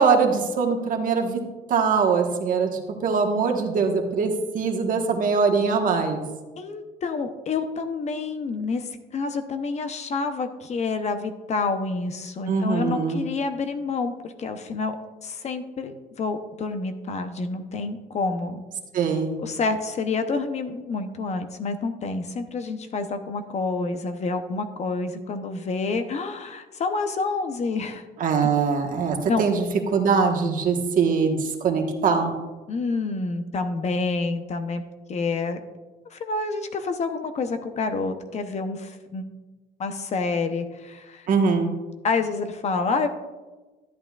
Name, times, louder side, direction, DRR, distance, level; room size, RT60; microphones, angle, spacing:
voice 1, 0.0-1.4 1.7-6.2 12.5-13.2 18.9-19.3 28.2-29.6 29.9-31.4 31.6-32.3 41.3-41.7, right 5 dB, 55° right, 3 dB, 1.3 m, -22 dB
voice 2, 6.6-15.0 15.2-18.6 19.4-28.0 28.4-28.5 29.3-29.5 32.7-34.8 35.1-35.6 36.1-39.3 39.8-41.3 42.0-43.1, left 4 dB, 40° left, 8 dB, 0.7 m, -28 dB
13.0 x 8.8 x 2.4 m, 1.2 s
cardioid pair, 110°, 17 cm